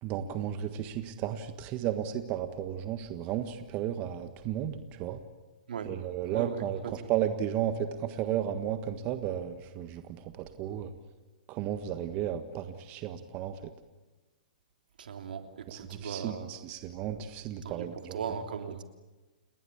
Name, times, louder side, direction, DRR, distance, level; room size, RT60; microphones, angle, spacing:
voice 1, 0.0-5.2 5.8-10.9 11.5-13.7 15.7-18.2, right 10 dB, 30° right, 9 dB, 1.5 m, -34 dB
voice 2, 6.3-7.1 15.0-16.5 17.6-18.8, right 6 dB, 75° right, 6 dB, 3.2 m, -38 dB
29.5 x 20.5 x 8.7 m, 1.2 s
hypercardioid pair, 140°, 5 cm